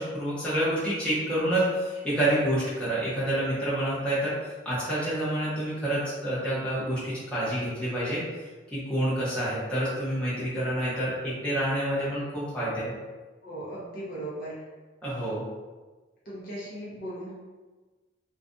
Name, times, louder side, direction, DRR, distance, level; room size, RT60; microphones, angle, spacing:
voice 1, 0.0-4.3 4.6-8.2 8.7-12.9 15.0-15.4, right 1 dB, 5° left, -11 dB, 0.8 m, -28 dB
voice 2, 13.4-14.6 16.3-17.3, right 1 dB, 45° left, -8 dB, 0.6 m, -37 dB
2.4 x 2.2 x 2.5 m, 1.3 s
head